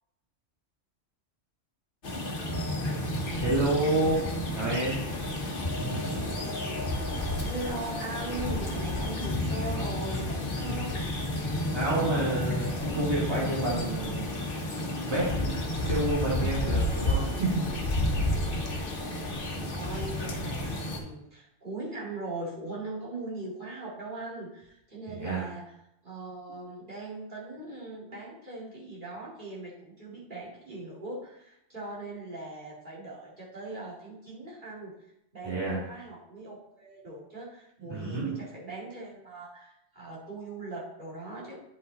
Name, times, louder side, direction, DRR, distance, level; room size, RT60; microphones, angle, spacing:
sound 1, 2.0-21.0, left 1 dB, 55° left, 1.3 m, -31 dB
voice 1, 3.4-4.3 4.5-5.0 5.8-6.0 11.7-14.3 15.0-17.7 18.1-18.2 25.1-25.5 35.4-35.8 37.9-38.4, right 2 dB, 25° right, -6 dB, 2.0 m, -29 dB
voice 2, 7.3-11.1 19.7-25.6 26.0-34.9 35.3-41.6, right 2 dB, 45° right, -7 dB, 2.6 m, -40 dB
9.6 x 5.5 x 3.9 m, 0.81 s
omnidirectional pair, 1.1 m